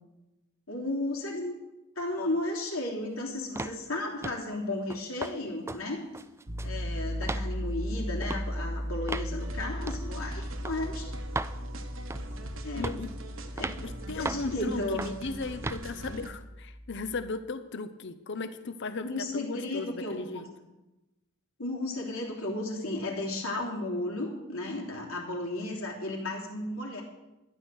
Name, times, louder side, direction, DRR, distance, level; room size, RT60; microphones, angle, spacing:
voice 1, 0.7-1.5 1.9-6.0 6.6-11.1 12.6-13.0 13.6-13.7 14.1-15.0 19.0-20.5 21.6-27.0, left 2 dB, 90° left, -1 dB, 3.2 m, -34 dB
sound 1, 3.6-3.8 4.2-4.5 4.9-5.4 5.7-5.8 6.1-6.8 7.2-7.5 8.2-8.4 9.1-9.3 9.9-10.1 10.6-10.8 11.3-11.6 12.1-12.4 12.8-13.1 13.6-13.8 14.2-14.5 15.0-15.2 15.6-15.8, right 3 dB, 10° right, 0.3 m, -35 dB
Piano, 6.5-17.3, equal, 45° right, 1.3 m, -37 dB
sound 2, 9.4-16.3, right 1 dB, 65° right, 1.2 m, -44 dB
voice 2, 12.7-13.1 13.8-20.5, left 3 dB, 55° left, 11 dB, 0.7 m, -36 dB
12.5 x 10.5 x 6.5 m, 1.0 s
head